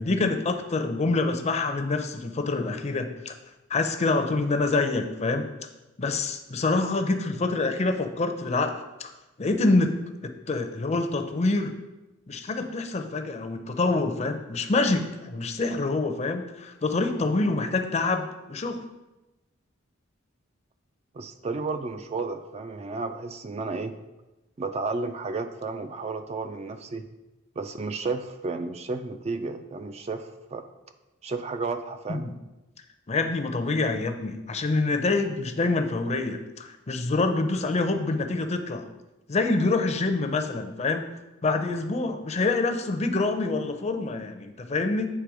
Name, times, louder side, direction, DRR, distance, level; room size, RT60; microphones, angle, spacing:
voice 1, 0.0-3.3 3.7-5.5 6.0-9.1 9.4-11.7 12.3-18.8 32.1-32.3 33.1-38.8 39.3-41.0 41.4-45.1, left 3 dB, 35° left, 7 dB, 0.5 m, -26 dB
voice 2, 21.1-24.0 24.6-27.1 27.6-30.6 31.2-32.3, right 3 dB, 30° right, 8 dB, 0.3 m, -32 dB
8.4 x 3.3 x 4.8 m, 1.0 s
head